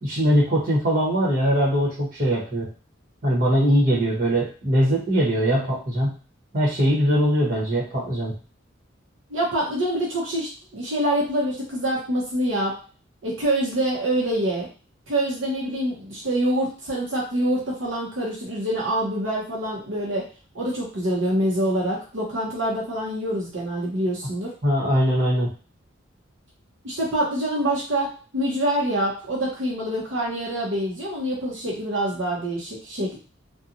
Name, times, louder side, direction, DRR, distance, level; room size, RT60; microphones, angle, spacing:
voice 1, 0.0-2.7 3.2-6.1 6.5-8.3 24.6-25.5, equal, 45° right, -5 dB, 1.1 m, -21 dB
voice 2, 9.3-12.7 13.2-14.7 15.1-20.3 20.5-24.5 26.8-33.2, right 1 dB, 75° right, -4 dB, 0.8 m, -25 dB
2.8 x 2.3 x 2.6 m, 0.36 s
head